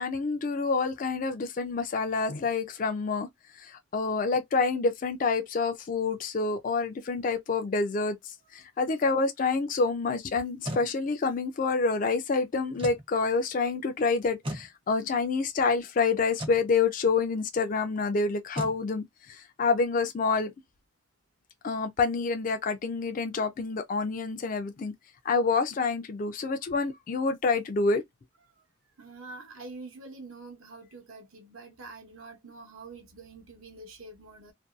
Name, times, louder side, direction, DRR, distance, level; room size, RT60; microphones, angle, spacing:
voice 1, 0.0-3.3 3.6-20.5 21.6-24.9 25.3-28.0, left 4 dB, 40° left, 0.3 m, -27 dB
sound 1, 10.4-10.9 12.7-13.1 14.4-14.7 16.3-16.6 18.5-18.8, right 1 dB, 25° right, 0.5 m, -35 dB
voice 2, 29.0-34.5, right 3 dB, 75° right, 0.8 m, -46 dB
2.6 x 2.2 x 2.3 m
head